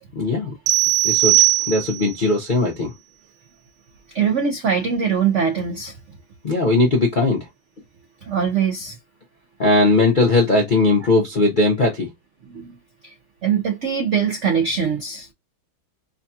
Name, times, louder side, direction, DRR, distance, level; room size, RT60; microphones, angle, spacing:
voice 1, 0.2-0.5 1.0-2.9 6.4-7.5 9.6-12.1, left 2 dB, 65° left, 0.4 m, -19 dB
sound 1, 0.7-2.2, right 18 dB, 70° right, 1.2 m, -18 dB
voice 2, 4.1-6.0 8.2-9.0 12.5-12.8 13.0-13.1 13.4-15.3, right 7 dB, 90° right, 0.6 m, -22 dB
5.0 x 2.3 x 2.6 m
omnidirectional pair, 2.2 m